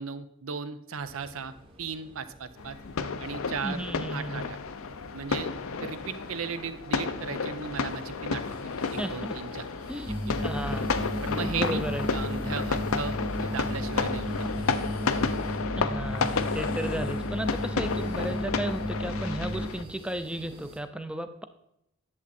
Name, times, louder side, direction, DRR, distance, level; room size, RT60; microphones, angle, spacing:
voice 1, 0.0-2.8 3.2-3.8 4.1-4.6 5.1-5.5 5.8-8.6 8.9-9.7 10.1-10.5 11.2-14.8, right 5 dB, 75° right, 12 dB, 0.7 m, -37 dB
sound 1, 1.0-20.8, right 1 dB, 25° right, 1.2 m, -51 dB
sound 2, 2.6-19.8, left 4 dB, 75° left, 0.6 m, -32 dB
voice 2, 3.6-4.5 9.0-9.4 9.9-10.1 10.4-10.9 11.4-12.1 15.8-21.4, right 1 dB, 5° right, 10 dB, 0.5 m, -34 dB
sound 3, 10.0-19.7, equal, 45° right, 2.4 m, -33 dB
11.0 x 7.3 x 4.3 m, 0.80 s
head